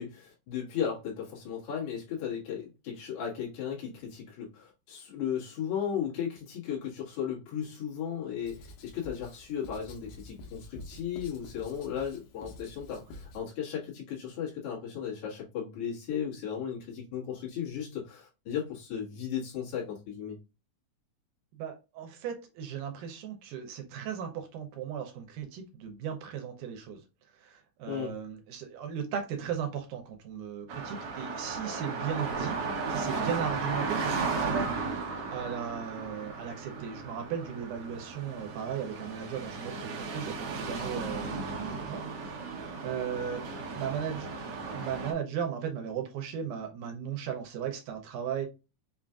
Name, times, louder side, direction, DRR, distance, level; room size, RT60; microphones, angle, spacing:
voice 1, 0.0-20.4 27.9-28.1, left 8 dB, 55° left, 2.2 m, -35 dB
Writing, 8.4-13.4, left 2 dB, 80° left, 2.3 m, -48 dB
voice 2, 21.6-27.0 27.3-32.6 32.9-35.0 35.3-42.4 42.8-43.4 43.8-44.3 44.7-48.5, right 8 dB, 85° right, 2.2 m, -36 dB
sound 1, 30.7-45.1, right 4 dB, 65° right, 1.5 m, -35 dB
5.4 x 2.5 x 2.3 m
omnidirectional pair, 3.6 m